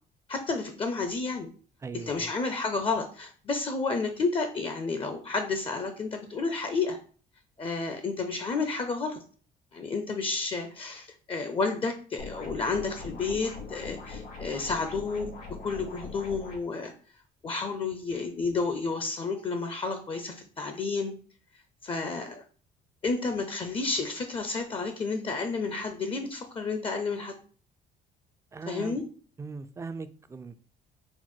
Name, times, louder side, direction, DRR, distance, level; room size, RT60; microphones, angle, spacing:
voice 1, 0.3-1.5 1.9-7.0 7.6-9.2 9.7-15.3 15.6-16.9 17.4-21.1 21.8-22.4 23.0-27.3 28.7-29.0, left 4 dB, 30° left, 0.6 m, -31 dB
voice 2, 1.8-2.3 28.5-29.0 29.4-30.6, right 4 dB, 15° right, 0.4 m, -39 dB
sound 1, 12.2-16.6, left 4 dB, 70° left, 2.2 m, -41 dB
4.4 x 2.2 x 4.4 m
cardioid pair, 110°, 17 cm